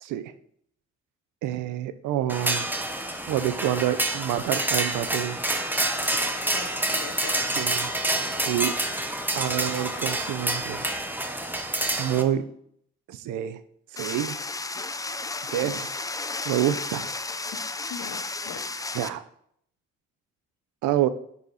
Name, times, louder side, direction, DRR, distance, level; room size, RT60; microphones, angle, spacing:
voice 1, 0.0-0.3 1.4-2.7 3.3-5.4 7.6-7.9 8.5-8.7 9.4-10.8 12.0-12.4 13.1-13.6 13.9-14.4 15.5-15.9 16.4-17.1 18.9-19.2 20.8-21.1, right 12 dB, 85° right, 13 dB, 0.6 m, -27 dB
sound 1, 2.3-12.2, right 1 dB, 5° right, 1.0 m, -28 dB
voice 2, 6.4-7.4 12.1-12.3 15.6-15.8 17.5-17.6 17.9-18.7, left 9 dB, 70° left, 9 dB, 0.9 m, -41 dB
sound 2, 14.0-19.1, left 3 dB, 10° left, 0.4 m, -33 dB
9.6 x 4.2 x 4.1 m, 0.68 s
cardioid pair, 90°, 30 cm